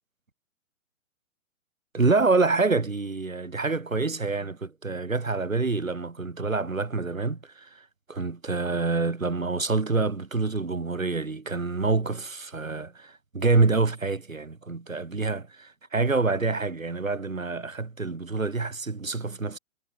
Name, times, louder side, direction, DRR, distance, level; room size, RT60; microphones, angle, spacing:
voice 1, 1.9-19.6, right 3 dB, 80° right, 2.4 m, -27 dB
figure-of-eight pair, 130°, 40 cm